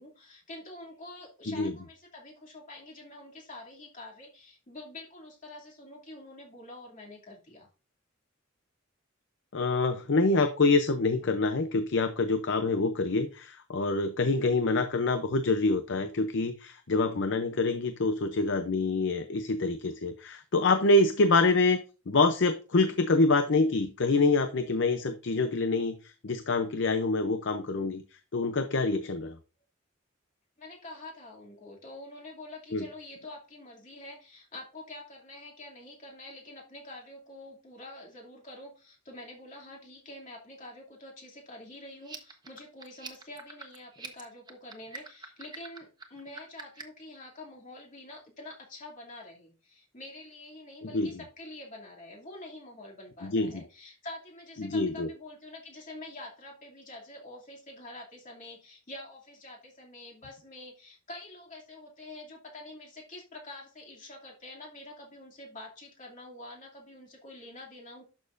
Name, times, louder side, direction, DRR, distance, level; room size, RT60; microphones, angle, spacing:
voice 1, 0.0-7.7 30.6-68.0, left 2 dB, 40° left, -2 dB, 2.7 m, -46 dB
voice 2, 9.5-21.8 22.1-28.0 28.3-29.4 32.7-32.8 50.9-51.1 53.2-53.6 54.6-55.1, left 3 dB, 65° left, 9 dB, 0.7 m, -26 dB
sound 1, 42.0-47.0, right 4 dB, 20° right, 1.2 m, -45 dB
11.5 x 6.5 x 2.6 m, 0.34 s
head